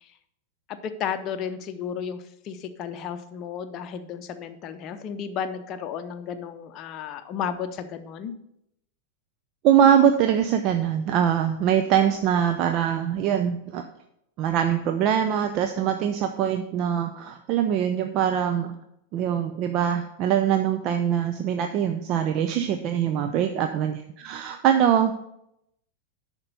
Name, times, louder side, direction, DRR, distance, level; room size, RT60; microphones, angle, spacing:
voice 1, 0.7-8.4, left 7 dB, 35° left, 8 dB, 0.7 m, -33 dB
voice 2, 9.6-13.8 14.4-18.8 19.1-25.2, right 9 dB, 40° right, 7 dB, 0.5 m, -23 dB
10.5 x 4.5 x 5.4 m, 0.79 s
figure-of-eight pair, 90°, 0 cm